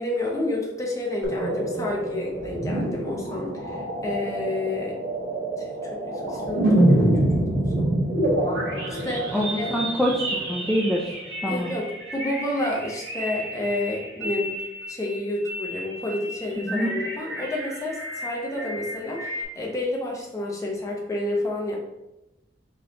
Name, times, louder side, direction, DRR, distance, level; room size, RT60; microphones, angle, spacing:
voice 1, 0.0-5.0 5.6-8.0 8.9-9.7 11.5-14.5 14.9-21.8, left 1 dB, 15° left, -2 dB, 0.8 m, -30 dB
sound 1, 1.2-19.4, right 1 dB, 85° right, 1.4 m, -27 dB
voice 2, 9.3-11.1 11.4-11.7 16.6-16.9, equal, ahead, -3 dB, 0.4 m, -25 dB
4.0 x 3.8 x 2.8 m, 0.94 s
head